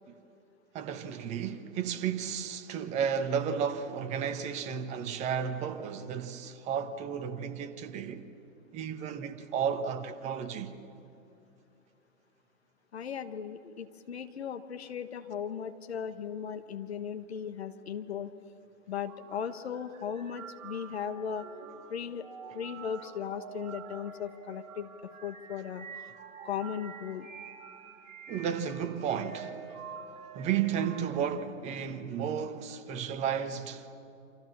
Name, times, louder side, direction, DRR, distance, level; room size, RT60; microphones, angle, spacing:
voice 1, 0.7-8.2 8.7-10.7 28.3-29.6 30.3-33.9, right 7 dB, 15° right, 1.2 m, -33 dB
voice 2, 12.9-18.3 18.9-21.5 21.9-22.3 22.5-24.9 25.2-25.9 26.4-27.3, left 8 dB, 50° left, 1.4 m, -37 dB
sound 1, 19.1-31.5, right 6 dB, 35° right, 4.6 m, -48 dB
28.5 x 26.5 x 7.3 m
figure-of-eight pair, 125°, 41 cm